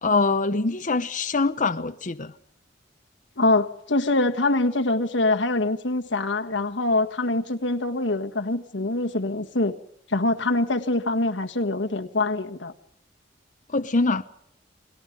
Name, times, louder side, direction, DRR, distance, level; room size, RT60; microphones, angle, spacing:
voice 1, 0.0-2.3 13.7-14.2, left 3 dB, 45° left, 0.9 m, -24 dB
voice 2, 3.4-9.7 10.1-12.7, left 2 dB, 85° left, 1.6 m, -24 dB
30.0 x 20.0 x 5.3 m
head